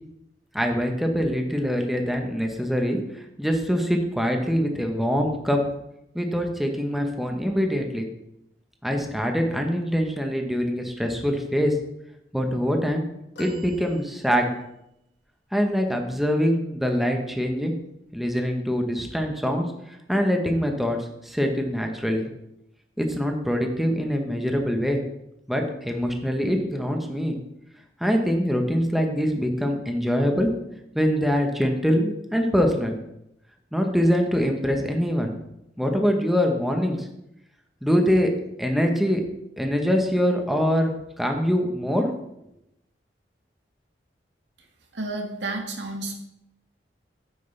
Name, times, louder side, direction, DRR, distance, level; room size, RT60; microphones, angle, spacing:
voice 1, 0.5-3.0 3.4-5.6 6.1-8.1 8.8-11.7 12.3-13.0 13.4-14.5 15.5-17.7 18.1-19.7 20.1-21.0 21.2-22.3 23.0-25.0 25.5-27.4 28.0-30.5 30.9-33.0 33.7-35.3 35.8-37.0 37.8-38.3 38.6-39.2 39.6-40.9 41.2-42.1, equal, ahead, 3 dB, 1.0 m, -24 dB
sound 1, 13.4-14.8 17.2-17.3 18.7-18.8, right 1 dB, 75° left, 2.2 m, -44 dB
voice 2, 44.9-46.2, right 2 dB, 90° right, 3 dB, 1.6 m, -31 dB
9.3 x 8.1 x 3.4 m, 0.83 s
head